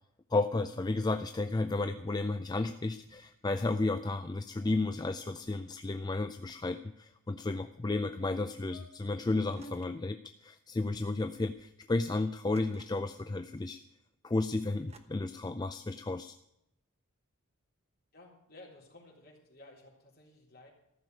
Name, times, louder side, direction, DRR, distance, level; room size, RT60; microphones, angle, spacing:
voice 1, 0.3-13.8 14.2-16.4, left 2 dB, 20° left, 9 dB, 0.4 m, -33 dB
sound 1, 3.0-3.8 4.1-4.2 4.5-4.7 5.0-5.1 5.3-5.6 6.2-7.2 7.9-8.0 8.3-8.4 8.7-9.8 10.7-11.7, left 1 dB, 75° left, 2.6 m, -56 dB
sound 2, 9.5-10.1 11.1-11.2 12.5-13.2 14.9-15.0, right 4 dB, 30° right, 1.0 m, -59 dB
voice 2, 18.1-20.7, left 2 dB, 45° left, -1 dB, 3.8 m, -55 dB
14.5 x 6.7 x 9.3 m, 0.83 s
head